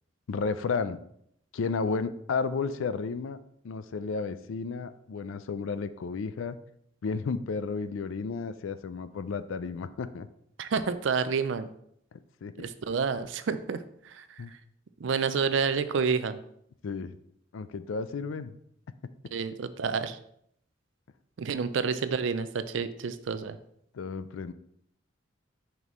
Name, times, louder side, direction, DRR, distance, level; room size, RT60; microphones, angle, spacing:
voice 1, 0.3-1.0 1.5-3.4 3.6-6.6 7.0-10.3 12.4-12.5 14.4-14.5 16.8-17.1 17.5-18.5 23.9-24.5, left 4 dB, 80° left, 13 dB, 0.4 m, -32 dB
voice 2, 10.6-11.7 12.6-14.4 15.0-16.4 19.3-20.2 21.4-23.6, right 5 dB, 65° right, 12 dB, 0.4 m, -29 dB
6.1 x 5.3 x 3.1 m, 0.71 s
head